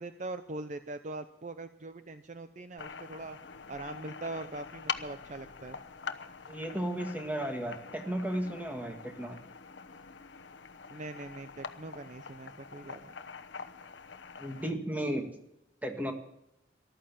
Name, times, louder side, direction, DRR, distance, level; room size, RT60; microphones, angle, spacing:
voice 1, 0.0-3.4 3.7-5.8 10.9-13.1, right 2 dB, 40° right, 10 dB, 0.6 m, -42 dB
sound 1, 2.8-14.7, left 6 dB, 75° left, 0.9 m, -44 dB
voice 2, 6.5-9.4 14.4-15.3 15.8-16.1, right 1 dB, 10° right, 5 dB, 1.8 m, -34 dB
14.0 x 12.5 x 7.0 m, 0.84 s
head